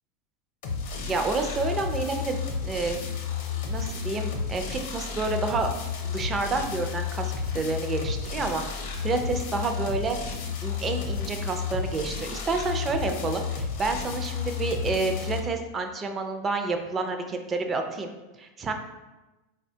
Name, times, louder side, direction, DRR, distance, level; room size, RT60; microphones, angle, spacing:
sound 1, 0.6-15.4, left 5 dB, 65° left, 0.6 m, -32 dB
voice 1, 1.0-3.0 3.7-5.7 6.0-10.3 10.6-18.7, right 3 dB, 25° right, 5 dB, 0.4 m, -29 dB
4.2 x 2.1 x 2.7 m, 1.1 s
hypercardioid pair, 115°, 0 cm